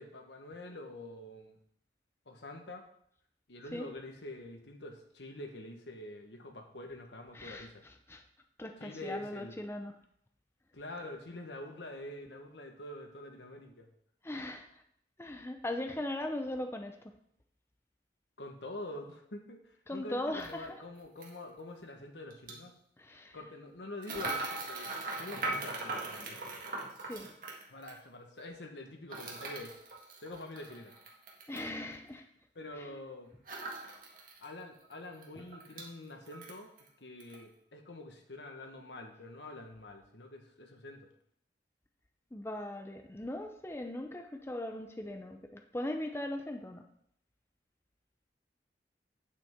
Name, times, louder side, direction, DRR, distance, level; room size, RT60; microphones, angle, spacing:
voice 1, 0.0-1.6 2.3-2.8 3.5-7.8 8.8-9.6 10.7-13.9 18.4-22.7 23.3-24.9 25.2-26.4 27.7-29.8 30.2-30.9 32.5-33.3 34.4-36.7 37.0-41.1, left 1 dB, 80° left, 4 dB, 1.4 m, -46 dB
voice 2, 7.3-8.2 8.6-9.9 14.2-14.7 15.2-17.0 19.9-20.8 23.0-23.4 27.0-27.3 31.5-32.3 32.8-32.9 42.3-46.9, left 1 dB, 15° left, 5 dB, 0.6 m, -39 dB
sound 1, 20.4-20.5 21.2-21.4 22.3-22.5 24.0-28.0 29.1-31.7 33.5-34.5 34.8-34.9 35.2-35.9 36.3-36.9 37.2-37.4, right 3 dB, 50° right, 1.8 m, -40 dB
9.0 x 8.0 x 3.7 m, 0.69 s
head